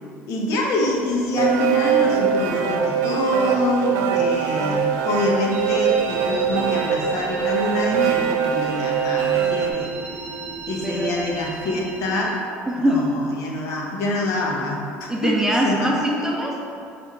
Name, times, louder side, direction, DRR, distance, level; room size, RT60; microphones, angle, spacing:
voice 1, 0.3-9.9 10.7-12.4 12.8-15.3 15.6-15.9, left 2 dB, 65° left, -1 dB, 0.8 m, -25 dB
sound 1, 0.8-9.7, right 8 dB, 70° right, 0.3 m, -22 dB
sound 2, 5.5-12.3, right 3 dB, 40° right, 0.9 m, -36 dB
voice 2, 10.8-11.1 12.7-13.1 15.1-16.7, equal, 10° right, -2 dB, 0.6 m, -22 dB
5.1 x 2.5 x 3.2 m, 2.5 s
supercardioid pair, 80°, 6 cm